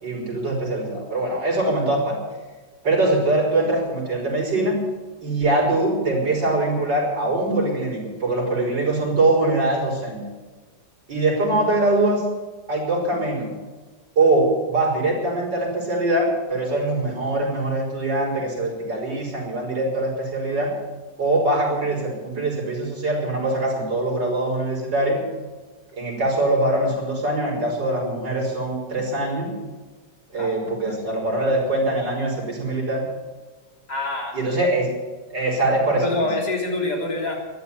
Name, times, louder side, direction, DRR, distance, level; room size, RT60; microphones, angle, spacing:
voice 1, 0.0-2.2 2.8-4.8 5.2-10.2 11.1-12.2 12.7-13.5 14.2-20.7 21.2-25.2 26.0-29.5 30.3-33.0 34.3-34.9 35.3-36.0, right 2 dB, 85° right, -3 dB, 6.1 m, -22 dB
voice 2, 33.9-34.4 36.0-37.5, left 2 dB, 65° left, -1 dB, 4.2 m, -26 dB
14.0 x 12.0 x 8.5 m, 1.3 s
omnidirectional pair, 1.9 m